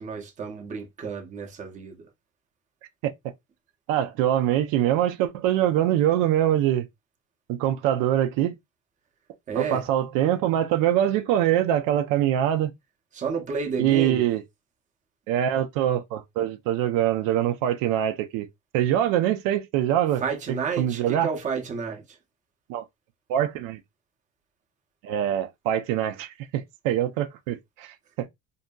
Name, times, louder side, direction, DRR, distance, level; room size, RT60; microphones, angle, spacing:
voice 1, 0.0-2.1 9.5-9.9 13.1-14.3 20.2-22.2, right 5 dB, 25° right, 0.6 m, -31 dB
voice 2, 3.9-6.9 7.5-8.5 9.6-12.7 13.8-14.4 15.3-18.5 18.7-20.2 20.8-21.3 22.7-22.8 23.3-23.8 25.0-28.3, right 11 dB, 85° right, 0.5 m, -24 dB
2.7 x 2.6 x 2.2 m
cardioid pair, 150°, 32 cm